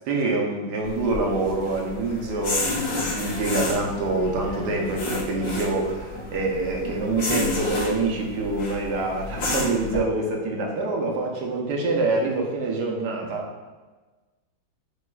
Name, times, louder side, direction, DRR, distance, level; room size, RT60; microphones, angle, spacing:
voice 1, 0.1-13.7, right 2 dB, 65° right, 0 dB, 1.2 m, -26 dB
sound 1, 0.8-10.0, left 2 dB, 65° left, 1.8 m, -31 dB
6.7 x 3.0 x 2.3 m, 1.2 s
omnidirectional pair, 2.2 m